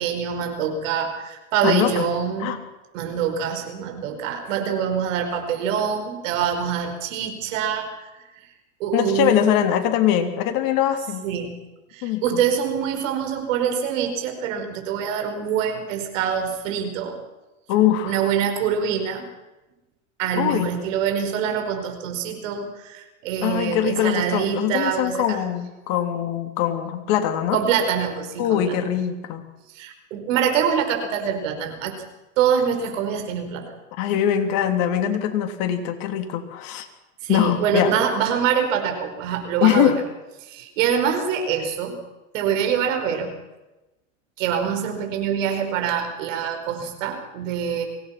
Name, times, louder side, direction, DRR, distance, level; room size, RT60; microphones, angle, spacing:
voice 1, 0.0-2.5 2.9-7.9 8.8-9.6 11.2-11.6 11.9-17.2 18.0-19.2 20.2-25.4 27.5-28.8 29.7-31.9 32.4-33.8 37.2-39.9 40.4-42.0 42.3-43.3 44.4-47.9, right 7 dB, 70° right, 5 dB, 5.3 m, -25 dB
voice 2, 1.6-2.1 2.4-2.6 8.9-11.2 12.0-12.4 17.7-18.3 20.4-20.7 23.4-27.6 28.4-29.4 34.0-36.9 37.3-37.9 39.6-40.0, left 10 dB, 55° left, 6 dB, 3.3 m, -22 dB
24.0 x 18.0 x 6.0 m, 1.0 s
hypercardioid pair, 100°, 40 cm